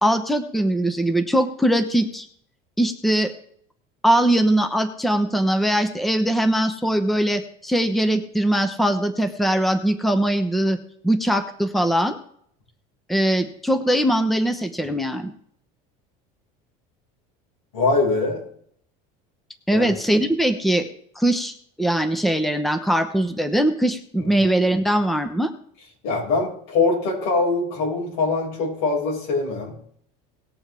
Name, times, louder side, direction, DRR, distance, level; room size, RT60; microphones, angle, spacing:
voice 1, 0.0-2.3 2.8-3.3 4.0-10.8 11.0-12.2 13.1-15.3 19.7-20.9 21.2-25.5, right 1 dB, ahead, 9 dB, 0.9 m, -21 dB
voice 2, 17.7-18.4 19.7-19.9 24.2-24.3 26.0-29.7, left 3 dB, 80° left, -2 dB, 6.0 m, -23 dB
19.0 x 7.1 x 3.6 m, 0.64 s
supercardioid pair, 125°, 19 cm